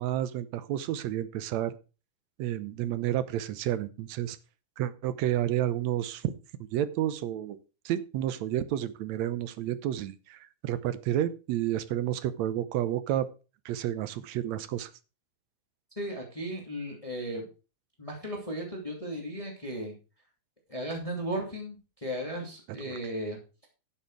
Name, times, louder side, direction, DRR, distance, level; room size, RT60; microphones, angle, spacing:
voice 1, 0.0-1.7 2.4-4.4 4.8-6.3 6.7-7.6 7.9-13.3 13.7-14.9 22.9-23.0, right 12 dB, 75° right, 14 dB, 2.0 m, -30 dB
voice 2, 16.0-17.5 18.0-19.9 20.7-23.4, right 1 dB, 10° left, 1 dB, 2.3 m, -35 dB
11.0 x 7.2 x 4.7 m, 0.32 s
omnidirectional pair, 3.4 m